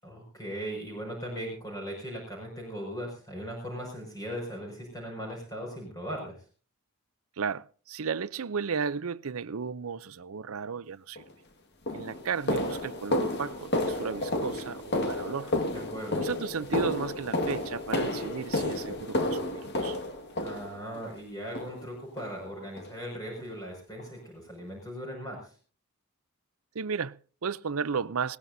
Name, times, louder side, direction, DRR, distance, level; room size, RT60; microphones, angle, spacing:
voice 1, 0.0-6.4 15.7-16.3 20.4-25.5, equal, 15° left, 5.8 m, -38 dB
voice 2, 7.4-11.2 11.9-15.5 16.2-20.0 26.7-28.4, right 5 dB, 75° right, 0.6 m, -34 dB
sound 1, 11.2-11.3 11.9-21.1 21.5-21.9 22.2-22.4 22.8-22.9 23.4-23.5 24.0-24.1, left 1 dB, 50° left, 1.9 m, -31 dB
20.5 x 18.5 x 2.7 m
head